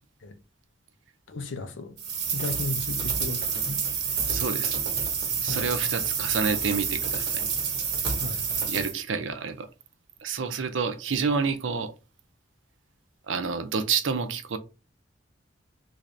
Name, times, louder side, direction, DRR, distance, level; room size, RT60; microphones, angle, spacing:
voice 1, 1.3-1.9 2.3-3.8 5.5-5.7 8.2-8.4, left 2 dB, 85° left, 0.6 m, -34 dB
sound 1, 2.0-8.9, right 6 dB, 60° right, 1.2 m, -28 dB
voice 2, 4.3-4.8 5.4-7.4 8.7-9.7 10.2-11.9 13.3-14.6, right 5 dB, 85° right, 0.6 m, -28 dB
3.2 x 2.6 x 3.2 m
head